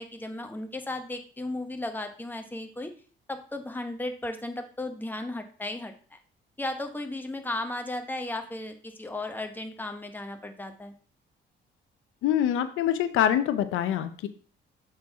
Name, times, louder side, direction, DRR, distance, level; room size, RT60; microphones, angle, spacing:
voice 1, 0.0-2.9 3.3-6.2 6.6-10.9, left 2 dB, 10° left, 5 dB, 1.0 m, -35 dB
voice 2, 12.2-14.3, left 10 dB, 85° left, 11 dB, 0.6 m, -25 dB
7.4 x 4.5 x 3.5 m, 0.41 s
cardioid pair, 90°, 20 cm